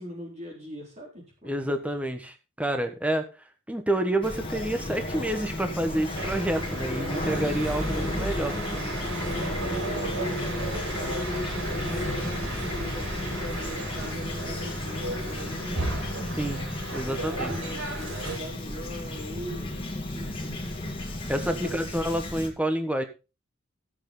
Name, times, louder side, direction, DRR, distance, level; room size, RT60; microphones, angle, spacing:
voice 1, 0.0-1.5 7.1-16.0 16.9-20.6 21.6-21.8, equal, 35° right, -1 dB, 3.9 m, -40 dB
voice 2, 1.4-3.3 3.7-8.5 16.4-16.6 16.9-17.6 21.3-23.0, right 1 dB, 5° right, 7 dB, 1.4 m, -28 dB
Fowl / Chirp tweet, 4.2-22.5, left 1 dB, 25° left, 2.3 m, -34 dB
sound 1, 6.1-18.4, right 1 dB, 75° right, 6.7 m, -34 dB
14.0 x 8.3 x 4.0 m, 0.30 s
head